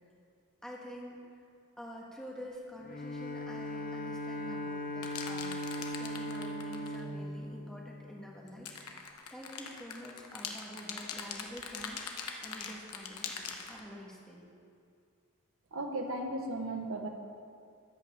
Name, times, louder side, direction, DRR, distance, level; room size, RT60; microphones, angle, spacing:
voice 1, 0.6-1.2 1.8-12.1 12.4-14.5, equal, 5° left, -4 dB, 1.6 m, -47 dB
Bowed string instrument, 2.8-8.5, left 1 dB, 40° left, 0.8 m, -39 dB
sound 1, 5.0-7.0 8.5-13.8, left 6 dB, 90° left, 1.0 m, -42 dB
voice 2, 15.7-17.1, right 2 dB, 65° right, 3 dB, 1.2 m, -36 dB
13.5 x 9.6 x 3.7 m, 2.3 s
head